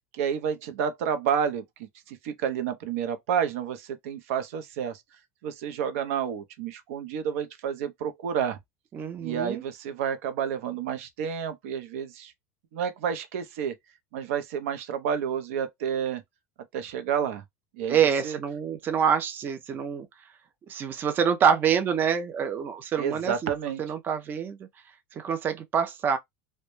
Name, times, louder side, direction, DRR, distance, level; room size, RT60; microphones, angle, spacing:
voice 1, 0.1-5.0 5.4-8.6 9.2-12.3 12.7-13.7 14.1-16.2 16.7-17.4 17.7-18.0 18.2-18.4 23.0-23.8, right 8 dB, 75° right, 0.5 m, -30 dB
voice 2, 8.9-9.6 17.9-20.1 20.7-23.5 23.8-24.7 25.1-26.2, right 7 dB, 25° right, 0.3 m, -26 dB
2.1 x 2.0 x 2.9 m
supercardioid pair, 140°, 8 cm